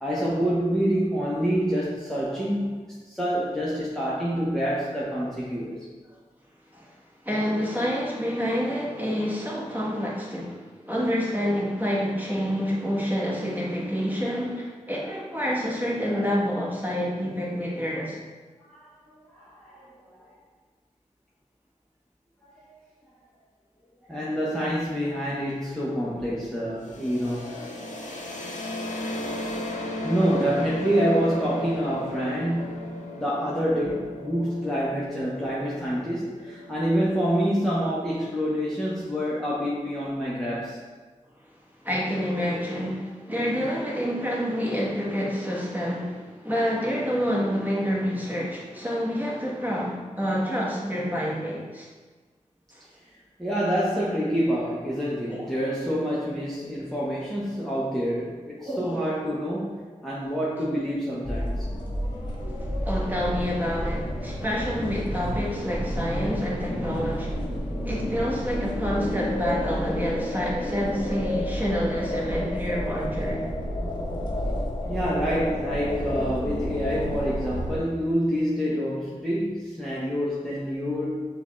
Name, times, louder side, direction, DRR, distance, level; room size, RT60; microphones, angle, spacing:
voice 1, 0.0-2.7 3.1-5.8 18.7-20.3 22.5-22.7 24.0-27.7 29.5-29.7 30.0-40.8 53.4-61.6 62.7-62.8 74.9-81.3, equal, 5° left, -7 dB, 0.8 m, -27 dB
voice 2, 7.2-18.2 41.8-51.9 52.7-52.8 55.3-55.5 58.6-59.0 62.5-73.5, equal, 15° right, -5 dB, 1.1 m, -28 dB
sound 1, 26.8-38.5, left 1 dB, 80° left, 0.6 m, -36 dB
sound 2, 61.2-77.8, left 1 dB, 35° left, 0.7 m, -30 dB
6.3 x 2.3 x 3.0 m, 1.4 s
wide cardioid pair, 65°, 13 cm